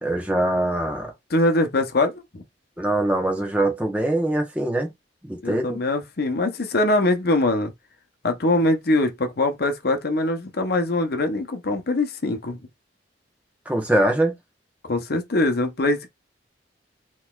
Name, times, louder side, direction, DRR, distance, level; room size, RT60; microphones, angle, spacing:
voice 1, 0.0-1.1 2.8-4.9 5.2-5.8 13.7-14.3, right 1 dB, 10° right, 1.1 m, -23 dB
voice 2, 1.3-2.4 5.4-7.7 8.2-12.6 14.8-16.1, left 2 dB, 60° left, 0.8 m, -22 dB
3.9 x 3.1 x 2.4 m
head